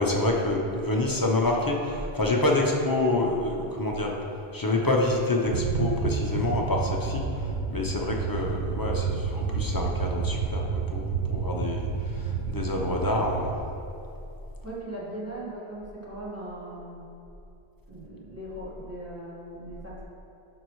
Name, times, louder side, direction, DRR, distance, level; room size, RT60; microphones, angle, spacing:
voice 1, 0.0-4.1 4.5-13.5, left 2 dB, 25° left, -1 dB, 0.8 m, -27 dB
sound 1, 5.5-13.5, right 5 dB, 70° right, 0.8 m, -30 dB
voice 2, 14.6-17.0 17.9-20.0, right 1 dB, 15° right, -8 dB, 1.7 m, -39 dB
11.0 x 6.4 x 3.2 m, 2.7 s
omnidirectional pair, 1.0 m